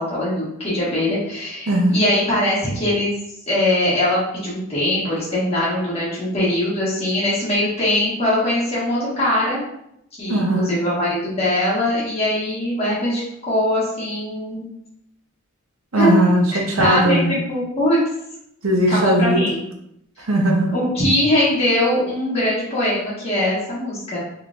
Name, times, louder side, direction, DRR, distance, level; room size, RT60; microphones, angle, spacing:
voice 1, 0.0-3.1 3.5-9.6 10.2-14.7 15.9-16.1 16.8-18.0 18.9-19.6 20.7-24.2, left 1 dB, 30° left, -9 dB, 1.3 m, -21 dB
voice 2, 10.3-10.7 15.9-17.3 18.6-19.4 20.2-20.7, right 1 dB, 70° right, 0 dB, 0.8 m, -18 dB
3.7 x 3.2 x 2.5 m, 0.76 s
head